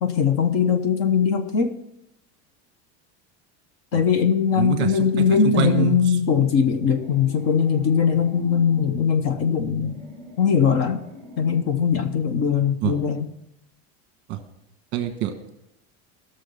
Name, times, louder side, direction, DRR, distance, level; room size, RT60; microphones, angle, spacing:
voice 1, 0.0-1.7 3.9-10.0 10.4-11.0 11.4-13.3, left 7 dB, 40° left, 0.8 m, -20 dB
voice 2, 4.6-4.9 5.4-6.0 12.8-12.9 14.3-14.4 14.9-15.5, right 12 dB, 35° right, 1.2 m, -25 dB
sound 1, 6.6-8.9 9.5-11.7, equal, 5° left, 3.8 m, -44 dB
15.5 x 6.6 x 5.5 m
cardioid pair, 175°, 33 cm